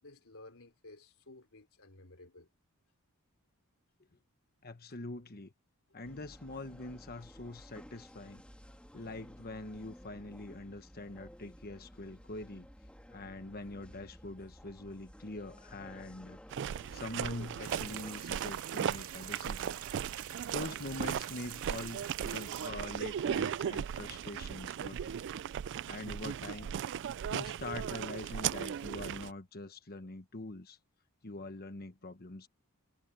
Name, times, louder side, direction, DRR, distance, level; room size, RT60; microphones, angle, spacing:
voice 1, 0.0-2.5, left 2 dB, 65° left, 4.0 m, -55 dB
voice 2, 4.6-5.5 5.9-8.4 8.9-12.7 13.1-16.4 16.9-19.8 20.1-25.2 25.9-26.8 27.3-30.8 31.2-32.5, left 2 dB, 45° left, 1.2 m, -44 dB
sound 1, 6.0-18.2, equal, 5° left, 2.0 m, -54 dB
sound 2, 16.5-29.3, right 8 dB, 55° right, 0.3 m, -37 dB
sound 3, 17.6-22.7, right 11 dB, 70° right, 2.6 m, -46 dB
head